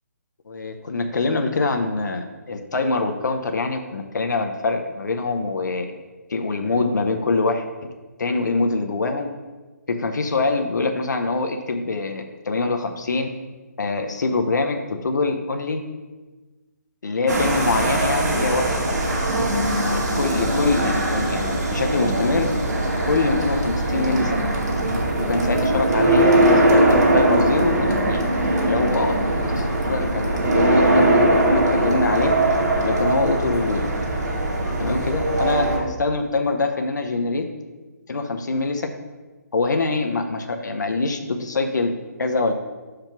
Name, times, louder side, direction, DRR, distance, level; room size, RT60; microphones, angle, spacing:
voice 1, 0.5-5.9 6.3-7.7 8.2-9.3 9.9-13.3 13.8-15.8 17.0-19.0 19.9-22.5 23.0-24.4 25.3-28.2 28.7-29.2 29.6-32.3 32.8-33.8 34.8-37.4 38.1-38.9 39.5-41.9 42.2-42.5, left 3 dB, 90° left, 4 dB, 0.9 m, -24 dB
sound 1, 17.3-35.8, right 1 dB, 70° right, 2.2 m, -20 dB
6.0 x 5.0 x 5.9 m, 1.3 s
hypercardioid pair, 170°, 9 cm